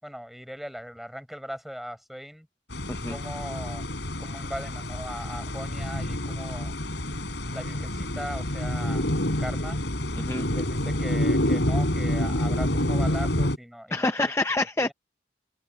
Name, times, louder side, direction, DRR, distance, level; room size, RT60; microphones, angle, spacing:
voice 1, 0.0-2.5 3.1-3.9 4.2-6.7 7.5-9.1 9.4-9.8 10.5-14.1 14.8-14.9, equal, ahead, 5.6 m, -39 dB
sound 1, 2.7-13.6, left 1 dB, 80° left, 3.5 m, -28 dB
voice 2, 10.2-10.5 13.9-14.9, left 2 dB, 15° left, 0.6 m, -27 dB
open air
head